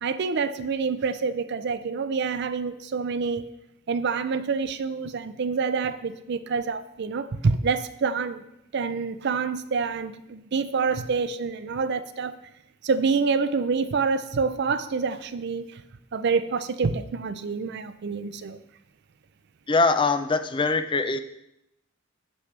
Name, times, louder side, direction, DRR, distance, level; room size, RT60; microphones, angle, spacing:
voice 1, 0.0-3.5 3.9-8.4 8.7-12.3 12.8-15.8 16.1-18.6, right 5 dB, 55° right, 13 dB, 0.5 m, -27 dB
voice 2, 19.7-21.2, left 3 dB, 25° left, 9 dB, 0.4 m, -22 dB
14.5 x 5.0 x 3.3 m, 0.83 s
head